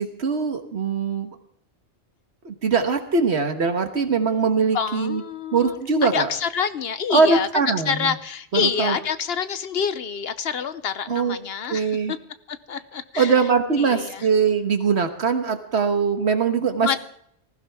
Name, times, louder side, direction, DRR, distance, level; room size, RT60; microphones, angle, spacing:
voice 1, 0.0-1.4 2.4-5.2 5.5-6.3 7.1-8.1 8.5-9.0 11.1-11.4 11.7-12.1 13.2-17.0, right 5 dB, 65° right, 6 dB, 1.6 m, -22 dB
voice 2, 4.7-7.5 7.9-12.2 12.5-13.3 13.8-14.3 16.8-17.0, left 7 dB, 60° left, 13 dB, 0.9 m, -27 dB
19.5 x 15.5 x 3.6 m, 0.66 s
omnidirectional pair, 1.2 m